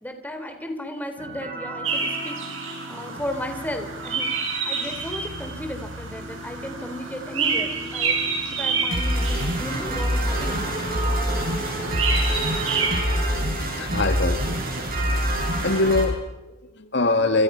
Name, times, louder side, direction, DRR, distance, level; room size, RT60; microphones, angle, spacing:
voice 1, 0.0-4.3 4.7-8.2 8.5-11.5, left 1 dB, 10° left, 5 dB, 3.5 m, -35 dB
sound 1, 1.2-16.1, equal, 45° right, 7.9 m, -28 dB
sound 2, 1.8-13.0, right 5 dB, 75° right, 6.8 m, -29 dB
sound 3, 9.5-13.7, equal, 25° left, 7.8 m, -35 dB
voice 2, 13.6-14.6 15.6-17.4, left 2 dB, 60° left, 8 dB, 1.8 m, -23 dB
29.0 x 27.5 x 5.7 m, 0.95 s
head